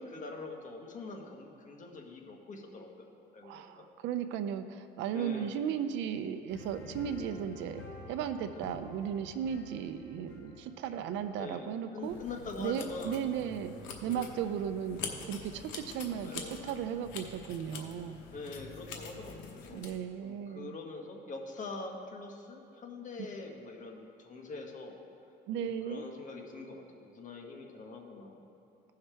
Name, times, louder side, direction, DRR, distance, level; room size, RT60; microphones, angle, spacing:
voice 1, 0.0-3.1 3.3-3.9 5.1-5.6 8.5-8.7 11.3-11.7 11.9-13.3 14.1-14.4 16.1-16.9 18.3-19.8 20.2-25.0 25.6-28.4, left 3 dB, 40° left, 1 dB, 1.4 m, -44 dB
voice 2, 3.4-12.2 12.6-13.7 14.0-15.0 15.3-18.2 19.7-20.7 25.5-26.0, right 8 dB, 80° right, 9 dB, 0.5 m, -36 dB
sound 1, 6.5-11.7, left 3 dB, 65° left, 1.6 m, -49 dB
sound 2, 12.0-20.0, left 5 dB, 90° left, 1.0 m, -45 dB
16.0 x 5.6 x 3.4 m, 2.8 s
cardioid pair, 105°, 19 cm